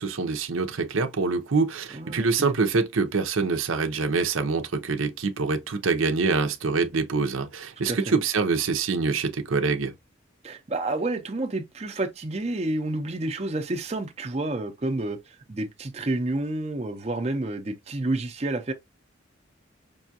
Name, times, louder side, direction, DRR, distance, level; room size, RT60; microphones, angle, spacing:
voice 1, 0.0-9.9, right 4 dB, 85° right, 0.7 m, -25 dB
voice 2, 1.9-2.5 7.9-8.0 10.4-15.2 15.5-18.7, right 2 dB, 30° right, 0.6 m, -29 dB
5.4 x 2.4 x 2.7 m
head